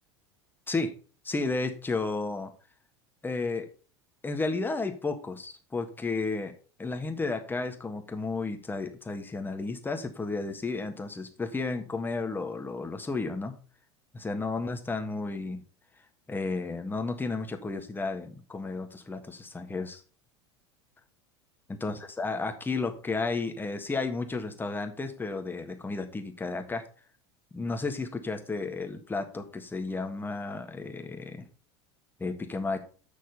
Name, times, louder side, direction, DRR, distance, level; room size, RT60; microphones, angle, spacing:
voice 1, 1.2-2.5 3.2-3.7 4.2-6.5 6.8-13.6 14.1-15.6 16.3-20.0 21.8-26.8 27.5-31.5 32.2-32.8, left 3 dB, 15° left, 6 dB, 1.6 m, -32 dB
7.0 x 6.1 x 5.5 m, 0.38 s
hypercardioid pair, 80°, 14 cm